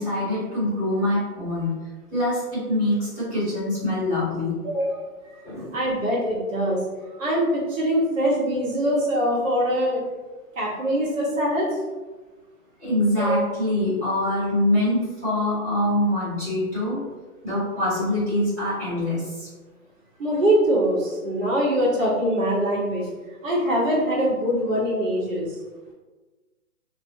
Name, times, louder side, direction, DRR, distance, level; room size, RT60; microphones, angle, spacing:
voice 1, 0.0-1.8 2.1-5.0 5.4-5.8 12.8-17.0 17.4-19.5, left 1 dB, 10° left, -14 dB, 1.1 m, -24 dB
voice 2, 5.7-6.8 7.2-10.0 10.6-11.7 20.2-23.1 23.4-25.6, equal, 60° right, -5 dB, 1.1 m, -23 dB
2.4 x 2.1 x 2.6 m, 1.3 s
hypercardioid pair, 175°, 45 cm